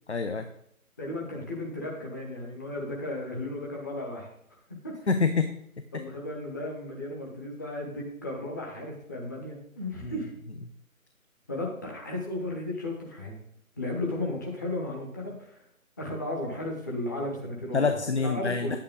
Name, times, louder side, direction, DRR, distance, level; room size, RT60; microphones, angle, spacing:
voice 1, 0.1-0.5 5.1-5.5 10.0-10.1 17.7-18.8, left 4 dB, 50° left, 8 dB, 0.8 m, -26 dB
voice 2, 1.0-4.3 4.8-5.0 5.9-10.3 11.5-13.3 13.8-15.6 16.0-18.7, left 1 dB, 15° left, -1 dB, 1.0 m, -34 dB
10.0 x 8.6 x 3.9 m, 0.72 s
figure-of-eight pair, 150°, 43 cm